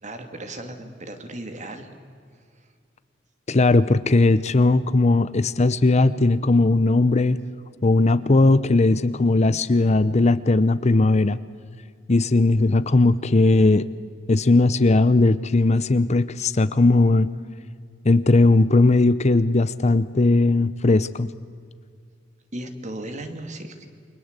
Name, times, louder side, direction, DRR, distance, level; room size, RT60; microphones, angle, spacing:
voice 1, 0.0-1.9 22.5-23.9, right 1 dB, 40° right, 7 dB, 2.6 m, -36 dB
voice 2, 3.5-7.4 7.8-11.4 12.1-13.8 14.3-17.3 18.0-21.3, left 2 dB, 35° left, 15 dB, 0.7 m, -18 dB
29.0 x 24.0 x 8.2 m, 2.2 s
head